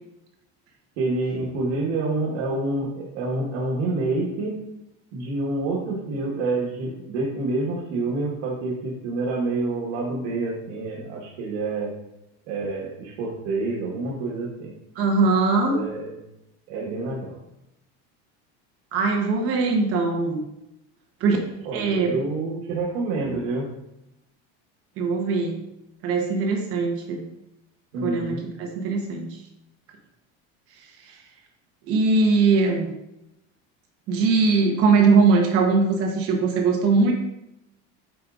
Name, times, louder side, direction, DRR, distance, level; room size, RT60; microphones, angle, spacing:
voice 1, 1.0-4.6 5.1-11.9 12.5-14.7 15.7-16.2 16.7-17.3 21.6-23.7 27.9-28.4, right 2 dB, 85° right, -4 dB, 1.6 m, -27 dB
voice 2, 15.0-15.8 18.9-20.4 21.2-21.4 21.7-22.2 25.0-25.6 26.0-27.2 28.0-29.3 31.1-31.2 31.9-32.9 34.1-37.1, right 4 dB, 45° right, 2 dB, 1.0 m, -21 dB
8.4 x 5.0 x 2.5 m, 0.86 s
cardioid pair, 165°, 33 cm